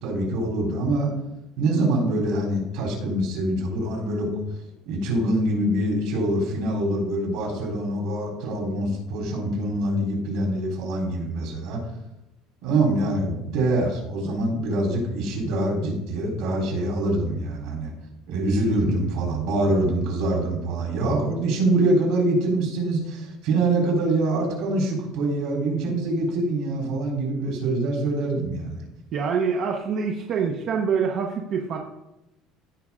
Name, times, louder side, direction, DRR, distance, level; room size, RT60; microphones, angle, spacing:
voice 1, 0.0-1.1 1.6-4.3 4.9-11.8 12.6-17.9 18.3-28.8, right 2 dB, 65° right, -1 dB, 3.8 m, -24 dB
voice 2, 29.1-31.8, right 6 dB, 40° right, 1 dB, 0.8 m, -25 dB
16.0 x 5.4 x 3.7 m, 0.92 s
cardioid pair, 175°, 0 cm